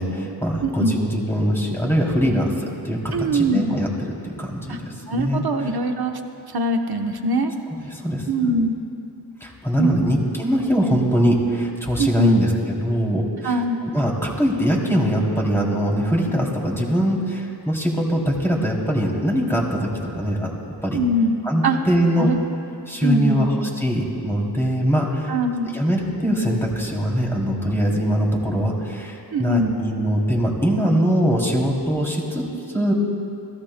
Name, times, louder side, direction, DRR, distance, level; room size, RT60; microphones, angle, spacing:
voice 1, 0.0-5.4 7.7-8.3 9.4-12.5 12.8-13.5 13.9-20.5 20.8-21.0 21.4-22.3 22.9-25.3 25.7-32.9, equal, 5° left, -2 dB, 2.8 m, -22 dB
voice 2, 0.6-1.0 3.1-3.6 4.7-6.2 6.5-7.5 8.3-8.8 9.8-10.2 12.0-12.4 13.4-13.8 20.9-21.4 21.6-21.8 22.2-22.4 23.0-23.5 25.3-25.7 29.3-29.8, right 1 dB, 65° right, 4 dB, 1.0 m, -22 dB
28.5 x 15.5 x 2.2 m, 2.6 s
wide cardioid pair, 50°, 41 cm